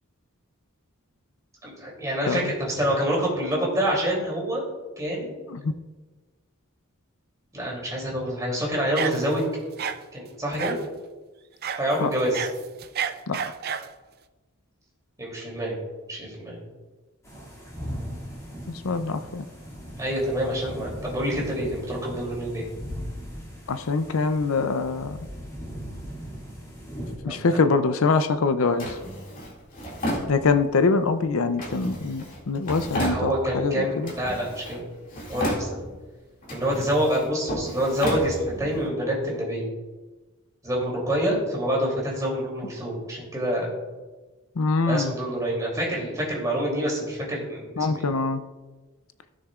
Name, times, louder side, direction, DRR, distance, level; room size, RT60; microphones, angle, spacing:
voice 1, 1.6-4.6 5.0-5.3 7.5-9.5 9.8-10.8 11.8-12.5 15.2-15.7 16.1-16.6 20.0-22.7 27.2-27.6 32.9-34.8 35.3-35.8 36.5-39.7 40.6-43.7 44.8-48.1, equal, 15° right, -4 dB, 2.9 m, -27 dB
sound 1, 9.0-9.4 9.8-10.0 10.6-10.9 11.6-11.8 12.2-13.9, right 7 dB, 45° right, 0.4 m, -30 dB
sound 2, 17.2-27.2, equal, 15° left, 2.3 m, -38 dB
voice 2, 18.7-19.5 23.7-25.2 27.2-29.0 30.3-34.1 44.6-45.1 47.8-48.4, left 4 dB, 70° left, 10 dB, 0.5 m, -24 dB
Drawer open or close, 28.8-30.9 31.6-33.7 34.0-34.8 35.1-36.0 36.4-38.9, equal, 40° left, 2.3 m, -33 dB
16.0 x 6.4 x 2.4 m, 1.3 s
head